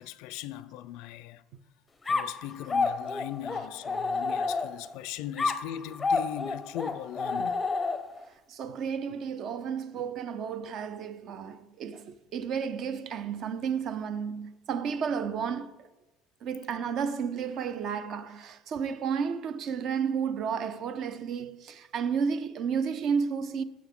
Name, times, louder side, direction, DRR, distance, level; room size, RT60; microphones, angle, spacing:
voice 1, 0.0-1.4 2.1-7.6, left 12 dB, 75° left, 0.4 m, -39 dB
sound 1, 2.1-4.9 5.4-8.2, left 4 dB, 15° left, 0.6 m, -30 dB
voice 2, 8.5-15.7 16.4-23.6, right 6 dB, 45° right, 0.6 m, -32 dB
15.0 x 7.4 x 3.7 m
cardioid pair, 160°, 0 cm